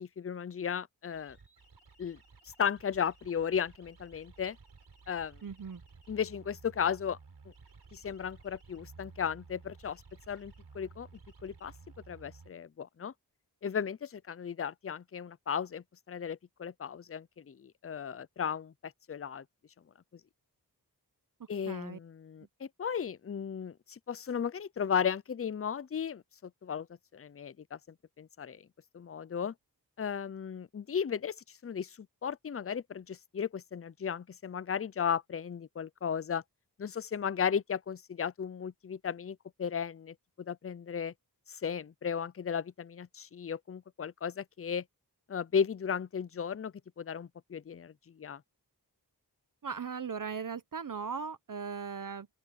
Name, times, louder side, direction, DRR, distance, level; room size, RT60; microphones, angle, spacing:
voice 1, 0.0-1.4 2.0-2.2 2.6-4.6 5.1-5.4 6.1-7.2 7.9-10.0 10.3-11.1 11.4-11.7 12.1-13.1 13.6-19.4 21.5-26.9 27.1-27.8 28.2-28.6 28.9-29.5 30.0-31.4 31.6-32.0 32.2-36.4 36.8-41.1 41.5-44.8 45.3-48.4, left 7 dB, 35° left, 0.5 m, -35 dB
sound 1, 1.1-12.5, right 4 dB, 75° right, 4.2 m, -55 dB
voice 2, 5.4-5.8 21.7-22.0 49.6-52.3, right 6 dB, 55° right, 0.8 m, -38 dB
open air
wide cardioid pair, 90°, 39 cm